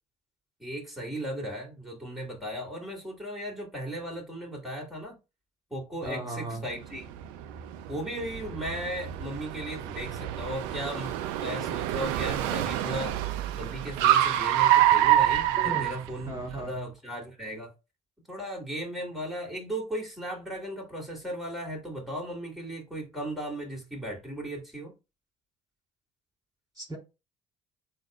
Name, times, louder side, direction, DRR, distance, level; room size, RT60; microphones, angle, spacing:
voice 1, 0.6-5.2 5.7-7.1 7.9-13.2 13.5-17.7 18.3-24.9, right 1 dB, ahead, 2.8 m, -36 dB
voice 2, 6.0-6.6 15.6-15.9 16.3-16.7 26.8-27.0, right 2 dB, 20° right, 2.6 m, -35 dB
Car, 6.8-16.6, right 12 dB, 70° right, 0.5 m, -26 dB
7.9 x 2.7 x 2.3 m
figure-of-eight pair, 50°, 16 cm